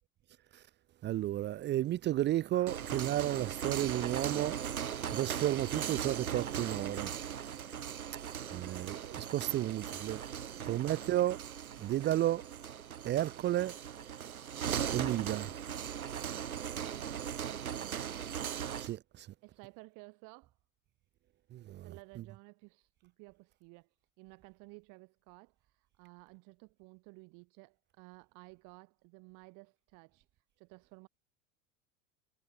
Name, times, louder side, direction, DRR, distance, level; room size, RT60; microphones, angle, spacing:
voice 1, 1.0-7.2 8.5-10.2 10.7-11.4 11.8-12.5 13.0-13.8 14.9-15.5 18.8-19.3 21.5-22.2, right 13 dB, 25° right, 0.7 m, -33 dB
sound 1, 2.5-19.0, right 9 dB, 80° right, 0.9 m, -39 dB
voice 2, 16.8-18.3 19.4-20.5 21.8-23.9 24.2-30.2 30.6-31.1, right 31 dB, 45° right, 4.3 m, -55 dB
figure-of-eight pair, 80°, 42 cm